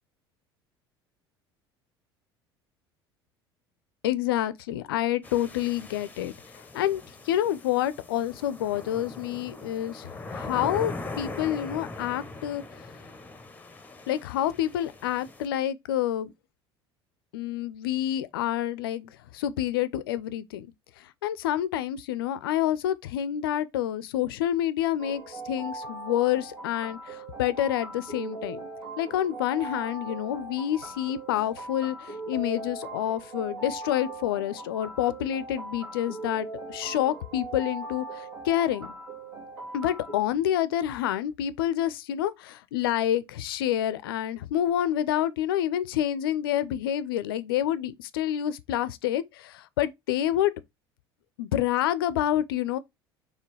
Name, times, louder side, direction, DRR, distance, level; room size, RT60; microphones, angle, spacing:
voice 1, 4.0-12.6 14.1-16.3 17.3-20.7 21.0-28.6 29.0-38.9 39.7-50.5 51.4-52.8, left 11 dB, 65° left, 0.5 m, -28 dB
sound 1, 5.2-15.5, left 2 dB, 10° left, 0.8 m, -41 dB
sound 2, 25.0-40.2, right 2 dB, 60° right, 2.2 m, -40 dB
4.4 x 3.3 x 3.1 m
figure-of-eight pair, 65°, 13 cm